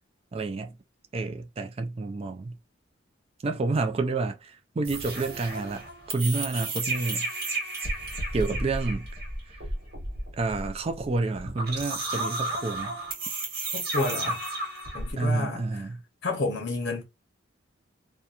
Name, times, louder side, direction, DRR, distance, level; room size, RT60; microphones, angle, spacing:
voice 1, 0.3-0.8 1.1-2.6 3.4-7.3 8.3-9.1 9.5-9.6 10.4-13.0 15.2-16.0, right 3 dB, 30° right, 0.3 m, -29 dB
sound 1, 4.8-15.1, right 2 dB, 55° right, 1.1 m, -33 dB
voice 2, 13.7-14.4 14.9-15.6 16.2-17.0, left 2 dB, 60° left, 0.8 m, -30 dB
2.8 x 2.2 x 2.3 m
head